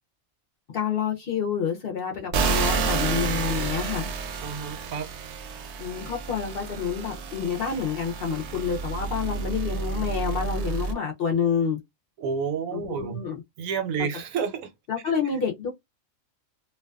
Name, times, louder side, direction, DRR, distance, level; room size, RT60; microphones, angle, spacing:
voice 1, 0.7-4.1 5.8-11.8 12.7-13.4 14.9-15.7, left 7 dB, 60° left, 0.7 m, -28 dB
sound 1, 2.3-10.9, right 5 dB, 65° right, 0.8 m, -30 dB
voice 2, 4.4-5.1 12.2-13.2 13.6-14.7, right 6 dB, 85° right, 1.1 m, -30 dB
2.5 x 2.2 x 2.3 m
omnidirectional pair, 1.4 m